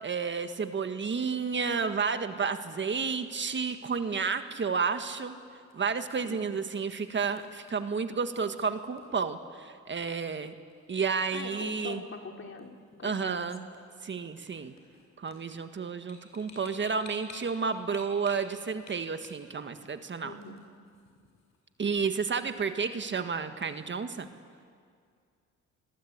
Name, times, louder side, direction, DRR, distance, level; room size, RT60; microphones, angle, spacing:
voice 1, 0.0-5.4 5.7-10.6 10.9-12.0 13.0-13.6 14.0-14.7 15.2-20.3 21.8-24.3, right 5 dB, 40° right, 9 dB, 1.6 m, -31 dB
sound 1, 4.7-24.0, left 3 dB, 65° left, 7.0 m, -57 dB
voice 2, 11.3-12.7 13.0-13.4 20.2-20.6, left 4 dB, 40° left, 4 dB, 3.2 m, -43 dB
27.5 x 21.5 x 8.7 m, 2.2 s
cardioid pair, 90°, 30 cm